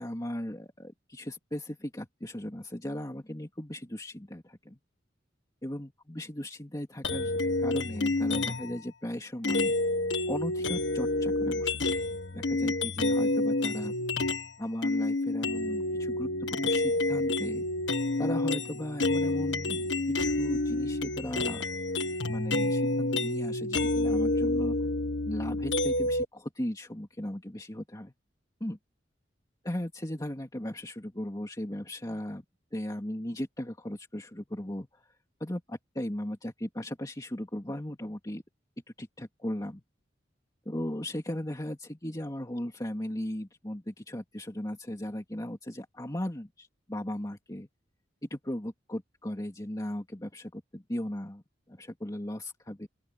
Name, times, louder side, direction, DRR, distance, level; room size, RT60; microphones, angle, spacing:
voice 1, 0.0-4.8 5.6-9.7 10.3-13.9 14.6-17.7 18.2-21.7 22.3-24.8 25.3-28.1 28.6-28.8 29.6-32.4 32.7-35.0 35.4-38.4 39.0-39.8 40.7-47.7 48.2-51.4 51.7-52.9, left 1 dB, 20° left, 2.5 m, -37 dB
sound 1, 7.0-8.8 9.4-14.5 14.8-26.2, left 2 dB, 85° left, 1.7 m, -29 dB
open air
head